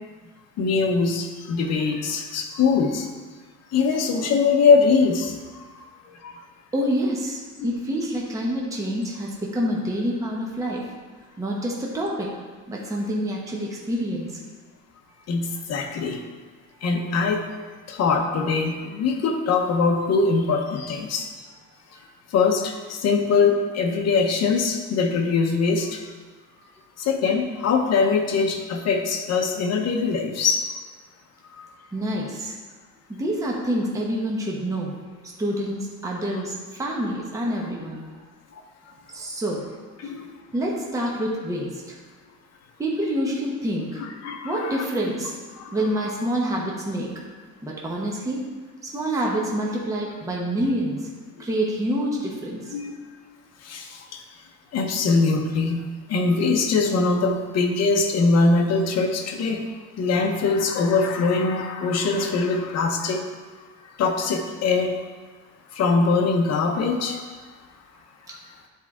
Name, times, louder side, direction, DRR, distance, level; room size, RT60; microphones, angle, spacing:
voice 1, 0.6-3.1 3.7-5.3 6.2-6.3 7.6-7.8 15.3-16.2 16.8-17.4 17.9-21.3 22.3-26.0 27.0-30.7 31.6-31.7 40.0-40.3 44.0-44.8 45.5-45.8 52.7-52.9 53.6-53.9 54.7-55.8 56.1-59.6 60.0-63.2 64.0-64.9 65.7-67.2, left 4 dB, 50° left, 3 dB, 0.9 m, -22 dB
voice 2, 6.7-10.8 11.4-12.3 12.7-14.4 15.8-16.0 21.9-22.0 31.9-32.6 33.1-34.9 35.2-38.1 39.1-39.6 40.5-41.8 42.8-44.0 44.4-45.4 45.7-47.1 47.6-48.5 48.8-51.1 51.4-52.6, equal, 10° right, -3 dB, 0.9 m, -27 dB
10.0 x 4.6 x 3.6 m, 1.4 s
cardioid pair, 165°, 33 cm